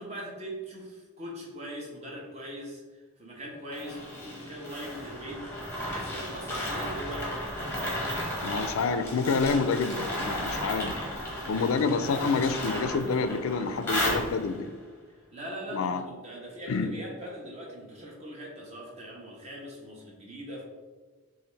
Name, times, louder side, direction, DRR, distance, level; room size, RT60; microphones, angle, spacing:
voice 1, 0.0-5.5 5.8-7.3 7.7-8.4 15.3-20.6, equal, 30° right, -3 dB, 1.0 m, -41 dB
sound 1, 3.7-14.7, equal, 10° left, 1.0 m, -34 dB
voice 2, 8.4-10.9 11.5-14.7 15.7-16.0 16.7-16.9, left 4 dB, 70° left, 10 dB, 0.4 m, -28 dB
6.7 x 2.5 x 3.2 m, 1.4 s
head